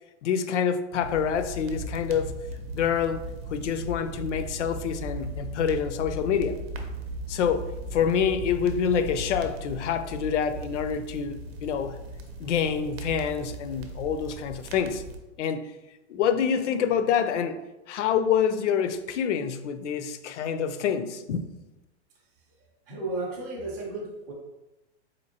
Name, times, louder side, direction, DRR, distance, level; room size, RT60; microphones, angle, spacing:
voice 1, 0.2-2.3 2.7-3.2 3.5-6.6 7.3-12.0 12.4-15.0 15.4-15.7 16.1-17.6 17.9-21.4, left 7 dB, 85° left, 10 dB, 0.5 m, -27 dB
sound 1, 1.0-15.2, equal, 60° right, 0.7 m, -37 dB
voice 2, 22.9-24.3, right 2 dB, 15° right, -4 dB, 0.4 m, -33 dB
4.3 x 2.8 x 2.8 m, 0.99 s
supercardioid pair, 170°, 35 cm